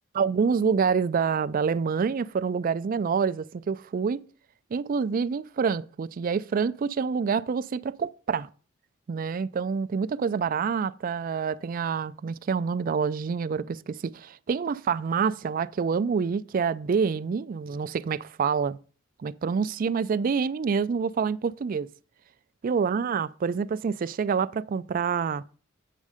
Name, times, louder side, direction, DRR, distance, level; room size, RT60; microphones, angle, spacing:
voice 1, 0.1-4.2 4.7-8.5 9.1-18.8 19.2-21.9 22.6-25.4, right 6 dB, 45° right, 0.3 m, -27 dB
8.4 x 6.4 x 4.9 m
head